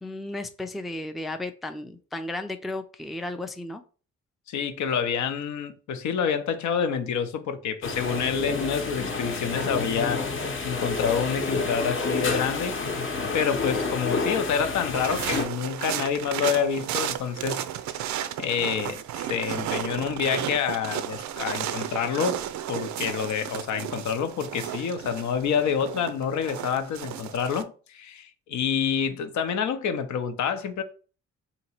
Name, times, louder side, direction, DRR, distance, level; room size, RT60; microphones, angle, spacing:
voice 1, 0.0-3.8, left 2 dB, ahead, 0.3 m, -34 dB
voice 2, 4.5-10.4 10.6-12.8 13.3-17.6 18.4-22.4 22.7-30.8, left 7 dB, 70° left, 0.7 m, -27 dB
sound 1, 7.8-15.5, left 3 dB, 45° left, 0.8 m, -29 dB
sound 2, 14.9-27.6, right 11 dB, 70° right, 0.4 m, -33 dB
2.9 x 2.8 x 4.3 m
cardioid pair, 90°, 30 cm